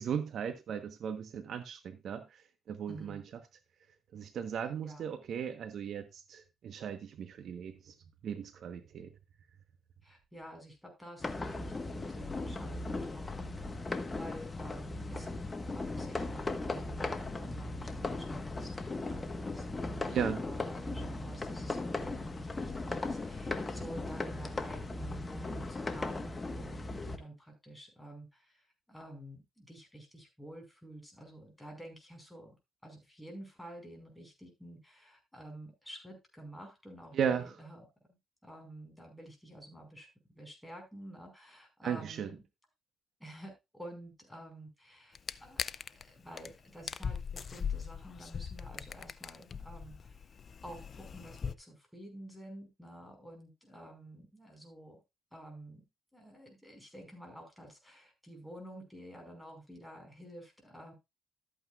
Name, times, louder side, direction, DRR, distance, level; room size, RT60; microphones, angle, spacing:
voice 1, 0.0-2.2 2.7-3.2 4.1-7.9 8.2-9.1 20.1-20.4 37.1-37.5 41.8-42.3, right 8 dB, 65° right, 1.1 m, -36 dB
voice 2, 2.9-3.2 4.8-5.1 10.0-15.3 15.7-32.5 32.8-38.2 38.4-42.4 43.2-45.7 46.0-50.4 50.6-55.0 55.3-55.8 56.1-60.9, right 1 dB, 5° left, 5.4 m, -50 dB
sound 1, 11.2-27.2, left 2 dB, 25° left, 1.4 m, -37 dB
sound 2, 45.2-46.0 46.4-46.5 46.8-51.6, left 6 dB, 45° left, 0.5 m, -40 dB
13.0 x 8.7 x 2.5 m
cardioid pair, 90°, 0 cm